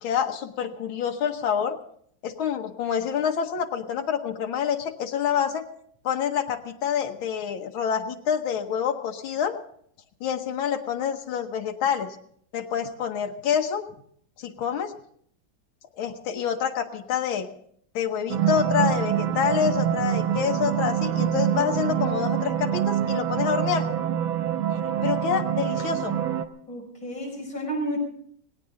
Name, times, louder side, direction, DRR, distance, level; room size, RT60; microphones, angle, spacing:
voice 1, 0.0-1.8 2.2-5.6 6.0-9.6 10.2-12.1 12.5-13.9 14.4-14.9 15.9-17.5 17.9-23.9 25.0-26.2, left 8 dB, 85° left, 5 dB, 1.9 m, -27 dB
sound 1, 18.3-26.4, right 10 dB, 85° right, 1.6 m, -25 dB
voice 2, 26.7-28.0, right 1 dB, 45° left, 0 dB, 5.9 m, -31 dB
18.5 x 18.0 x 3.8 m, 0.64 s
omnidirectional pair, 2.2 m